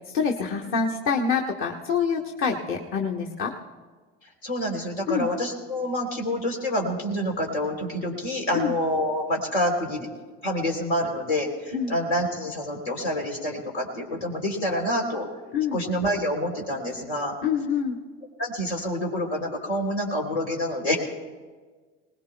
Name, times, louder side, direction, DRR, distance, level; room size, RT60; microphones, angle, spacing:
voice 1, 0.1-3.5 5.1-5.3 8.5-8.7 11.7-11.9 15.5-15.8 17.4-18.0, left 6 dB, 40° left, 0 dB, 1.4 m, -26 dB
voice 2, 4.4-10.1 10.4-15.3 15.7-17.3 18.4-21.0, equal, 85° left, 0 dB, 3.4 m, -27 dB
21.5 x 19.5 x 2.3 m, 1.4 s
hypercardioid pair, 80°, 31 cm